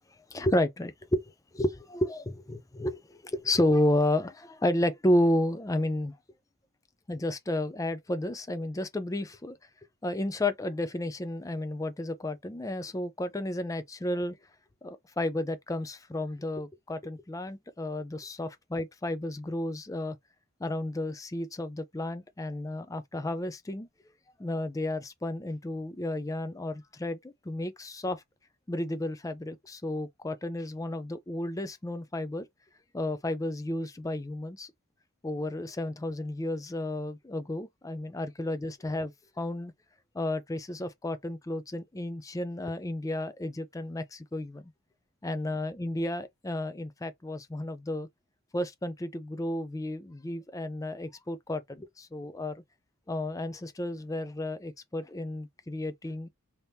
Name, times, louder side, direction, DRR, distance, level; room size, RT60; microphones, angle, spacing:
voice 1, 0.3-6.2 7.1-9.6 10.0-14.4 14.8-20.2 20.6-23.9 24.4-28.2 28.7-32.5 32.9-34.7 35.2-39.7 40.1-44.6 45.2-48.1 48.5-52.6 53.1-56.3, left 1 dB, 15° left, 0.4 m, -32 dB
3.4 x 2.8 x 2.7 m
head